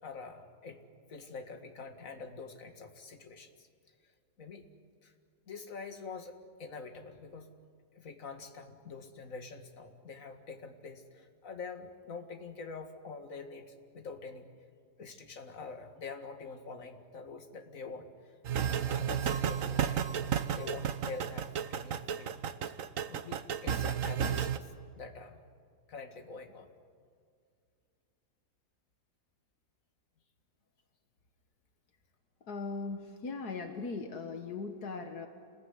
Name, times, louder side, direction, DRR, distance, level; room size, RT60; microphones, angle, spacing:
voice 1, 0.0-3.7 4.4-4.7 5.0-5.1 5.5-7.5 7.9-14.5 15.0-18.4 18.7-22.4 22.7-22.8 23.1-25.4 25.9-26.7, left 4 dB, 55° left, 5 dB, 2.3 m, -46 dB
sound 1, 18.4-24.6, right 8 dB, 60° right, 1.3 m, -32 dB
voice 2, 32.5-35.3, left 4 dB, 75° left, 5 dB, 2.0 m, -39 dB
28.5 x 21.5 x 9.7 m, 2.2 s
omnidirectional pair, 1.7 m